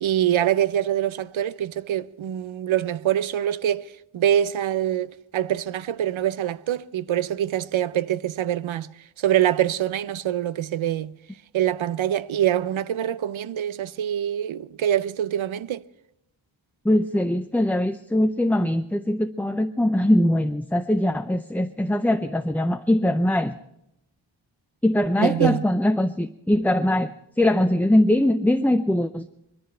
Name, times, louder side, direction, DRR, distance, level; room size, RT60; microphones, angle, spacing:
voice 1, 0.0-3.9 4.1-8.9 9.2-11.1 11.5-15.8 25.2-25.6, right 11 dB, 75° right, 0.6 m, -24 dB
voice 2, 16.8-23.6 24.8-27.1 27.4-29.3, left 1 dB, 5° left, 0.4 m, -21 dB
21.0 x 13.5 x 4.4 m
wide cardioid pair, 65°, 48 cm